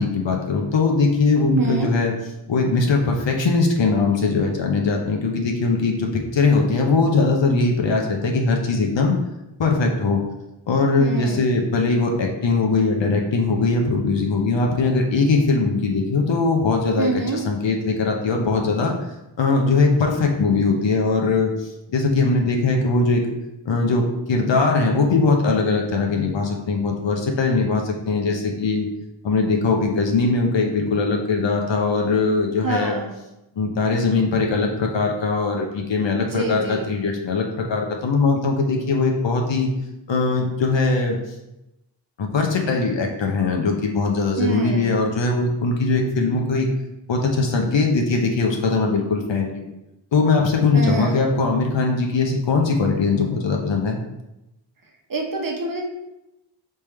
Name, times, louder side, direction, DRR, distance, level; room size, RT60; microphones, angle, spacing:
voice 1, 0.0-2.1 2.5-9.1 9.6-10.2 10.7-18.9 19.4-23.2 23.7-28.9 29.2-33.0 33.6-39.7 40.1-41.2 42.2-46.7 47.1-49.7 50.1-54.0, left 3 dB, 75° left, 1 dB, 0.7 m, -20 dB
voice 2, 1.3-1.9 11.0-11.5 17.0-17.5 32.6-33.2 36.1-36.9 44.4-45.0 50.7-51.2 55.1-55.8, right 3 dB, 50° right, 1 dB, 0.9 m, -26 dB
4.2 x 3.4 x 3.4 m, 0.92 s
wide cardioid pair, 75°, 44 cm